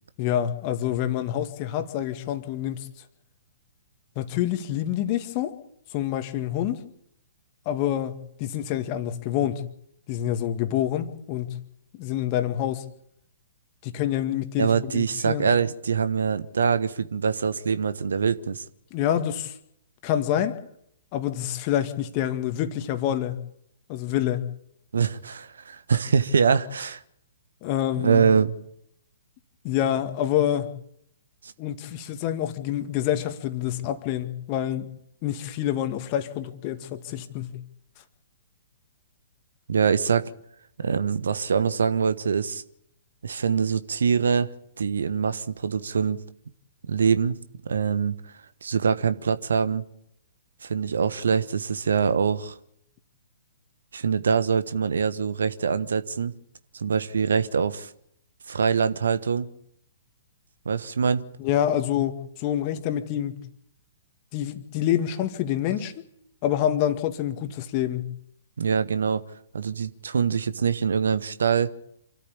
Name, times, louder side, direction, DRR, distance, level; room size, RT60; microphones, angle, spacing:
voice 1, 0.2-2.9 4.2-5.5 5.9-6.8 7.7-9.6 10.1-11.6 12.0-12.8 13.8-15.5 18.9-19.5 20.0-20.6 21.1-23.4 23.9-24.4 27.6-28.2 29.6-30.7 31.6-34.9 35.2-37.6 61.4-63.4 64.3-65.9 66.4-68.1, left 11 dB, 30° left, 2.0 m, -27 dB
voice 2, 14.6-18.6 24.9-27.0 28.0-28.5 31.4-31.5 39.7-40.3 40.8-42.6 43.2-44.5 44.8-46.2 46.9-47.4 47.6-48.3 48.6-49.8 50.6-52.6 53.9-56.3 56.7-57.9 58.5-59.5 60.6-61.3 68.6-69.2 69.5-71.7, right 6 dB, 60° right, 1.2 m, -24 dB
27.5 x 13.5 x 8.6 m
figure-of-eight pair, 115°, 0 cm